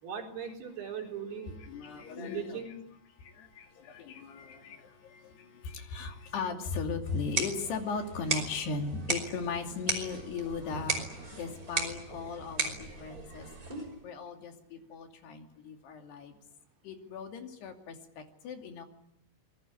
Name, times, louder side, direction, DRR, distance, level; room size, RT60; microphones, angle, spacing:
voice 1, 0.0-1.6 2.2-2.7, right 7 dB, 70° right, 1 dB, 6.1 m, -39 dB
voice 2, 1.2-2.7 3.2-13.5 14.0-16.4 16.8-18.9, left 4 dB, 75° left, 4 dB, 4.7 m, -38 dB
sound 1, 7.0-14.0, right 3 dB, 20° right, 5.5 m, -36 dB
27.0 x 22.0 x 9.7 m, 0.76 s
omnidirectional pair, 4.8 m